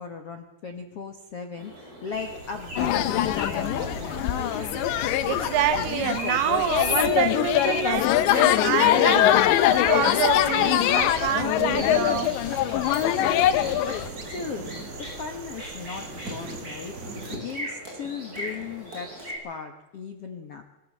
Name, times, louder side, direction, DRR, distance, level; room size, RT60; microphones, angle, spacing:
voice 1, 0.0-4.4 12.4-20.6, left 5 dB, 70° left, 1.4 m, -38 dB
sound 1, 1.6-19.3, equal, 20° right, 8.3 m, -39 dB
sound 2, 2.1-17.4, right 3 dB, 40° right, 2.2 m, -40 dB
sound 3, 2.8-14.1, left 12 dB, 85° left, 3.3 m, -23 dB
voice 2, 5.3-9.3 9.8-12.4, right 11 dB, 85° right, 3.5 m, -27 dB
24.5 x 17.0 x 7.8 m
omnidirectional pair, 5.0 m